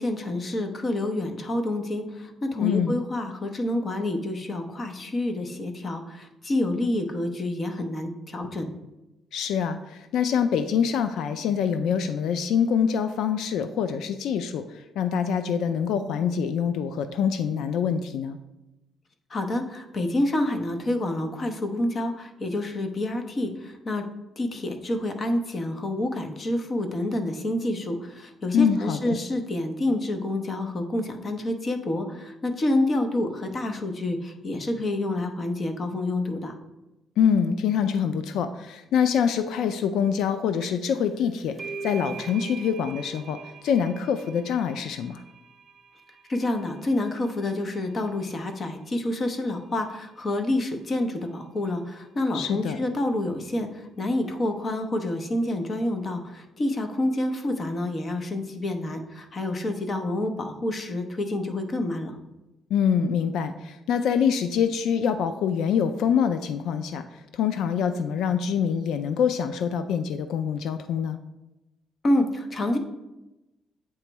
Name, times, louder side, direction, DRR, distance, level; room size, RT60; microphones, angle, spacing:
voice 1, 0.0-8.7 19.3-24.0 24.4-36.5 46.3-62.2 72.0-72.8, left 1 dB, 30° left, 6 dB, 0.7 m, -28 dB
voice 2, 2.6-3.0 9.3-18.4 28.5-29.2 37.2-45.2 52.3-52.8 62.7-71.2, left 7 dB, 80° left, 10 dB, 0.3 m, -25 dB
sound 1, 40.6-40.9 41.2-48.5, right 5 dB, 20° right, 0.6 m, -43 dB
8.5 x 3.0 x 4.5 m, 0.97 s
cardioid pair, 150°, 0 cm